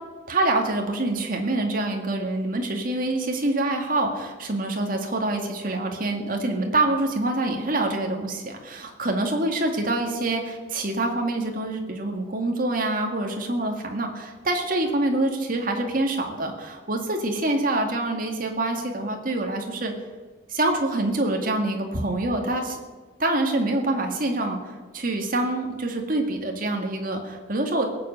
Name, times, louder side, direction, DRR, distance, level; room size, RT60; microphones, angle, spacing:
voice 1, 0.3-19.9 20.5-22.8 23.2-27.9, right 2 dB, 50° right, 3 dB, 2.2 m, -26 dB
17.5 x 7.5 x 8.1 m, 1.4 s
head